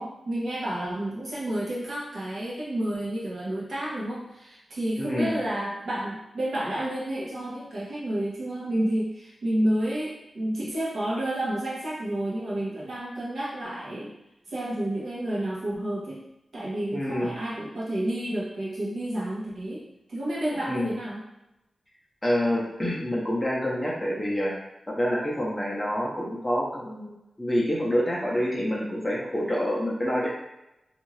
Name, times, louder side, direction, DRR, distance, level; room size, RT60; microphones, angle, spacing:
voice 1, 0.0-14.2 14.5-16.2 16.5-19.8 20.1-21.2, right 1 dB, 70° right, -7 dB, 1.0 m, -30 dB
voice 2, 5.0-5.4 16.9-17.4 20.7-20.9 22.2-24.5 24.9-27.1 27.4-30.3, equal, 10° left, -5 dB, 0.6 m, -27 dB
2.6 x 2.4 x 3.1 m, 0.91 s
wide cardioid pair, 175°, 0 cm